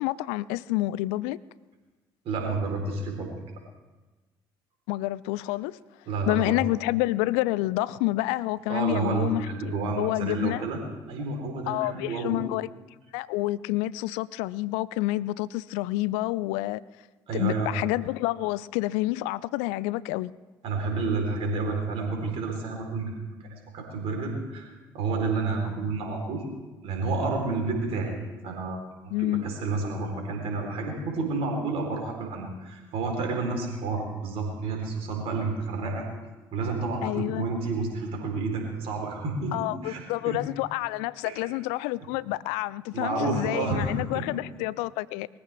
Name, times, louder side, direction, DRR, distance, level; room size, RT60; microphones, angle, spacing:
voice 1, 0.0-1.4 4.9-5.8 6.3-10.6 11.7-12.7 13.1-16.8 17.3-20.3 29.1-29.4 37.0-37.5 39.5-45.3, left 18 dB, 65° left, 0.4 m, -28 dB
voice 2, 2.2-3.3 6.1-6.6 8.7-10.8 11.1-12.4 17.3-17.7 20.6-23.1 23.4-24.7 24.9-26.4 26.8-28.1 28.4-28.8 29.2-36.1 36.5-40.4 41.2-41.5 42.9-44.4, right 3 dB, 55° right, 4.1 m, -30 dB
22.0 x 14.5 x 3.6 m
figure-of-eight pair, 50°, 12 cm